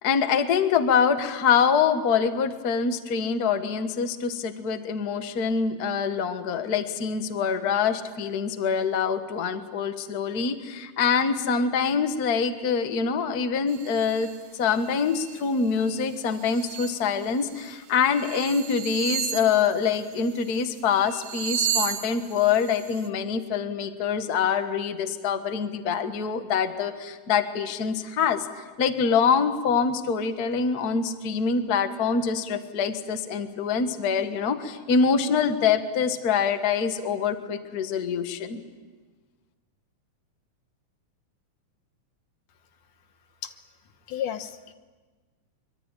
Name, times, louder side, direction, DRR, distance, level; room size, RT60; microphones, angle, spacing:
voice 1, 0.0-14.3 14.5-28.5 28.8-38.6, left 6 dB, 45° left, 8 dB, 1.4 m, -25 dB
sound 1, 13.7-14.4 14.8-15.4 15.8-17.0 17.5-17.7 18.0-20.7 21.0-23.1, right 9 dB, 65° right, 1.9 m, -33 dB
voice 2, 44.1-44.7, left 10 dB, 85° left, 9 dB, 2.7 m, -32 dB
24.0 x 23.5 x 9.0 m, 1.3 s
omnidirectional pair, 3.6 m